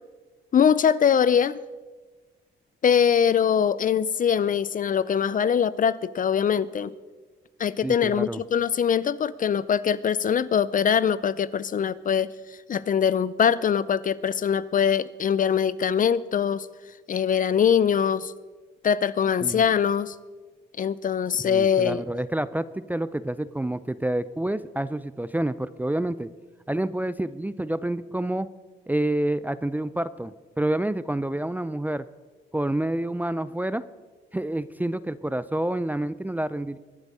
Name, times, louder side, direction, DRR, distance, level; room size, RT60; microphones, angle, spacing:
voice 1, 0.5-1.6 2.8-6.9 7.6-12.3 12.7-16.7 17.1-18.3 18.8-20.1 20.8-22.0, left 7 dB, 45° left, 17 dB, 0.6 m, -22 dB
voice 2, 7.8-8.4 19.4-19.6 21.4-26.3 26.7-28.5 28.9-32.1 32.5-33.8 34.3-36.8, right 1 dB, 10° right, 15 dB, 0.5 m, -28 dB
23.0 x 8.1 x 5.5 m, 1.3 s
cardioid pair, 90°, 20 cm